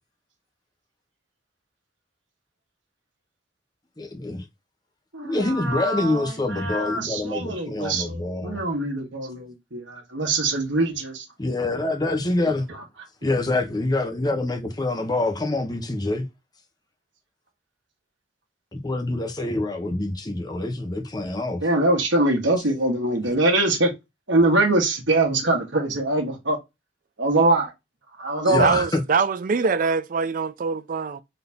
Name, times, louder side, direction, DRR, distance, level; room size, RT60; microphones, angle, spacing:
voice 1, 4.0-4.4 5.2-8.6 11.4-12.7 13.2-16.3 18.8-21.6 23.3-23.4 28.4-29.0, left 2 dB, 20° left, 0.7 m, -26 dB
voice 2, 5.1-11.2 21.6-23.9 24.3-26.6 27.2-27.7 28.2-28.8, right 2 dB, 70° right, 1.3 m, -23 dB
voice 3, 28.6-31.2, right 5 dB, 45° right, 0.4 m, -23 dB
4.0 x 2.7 x 3.4 m
head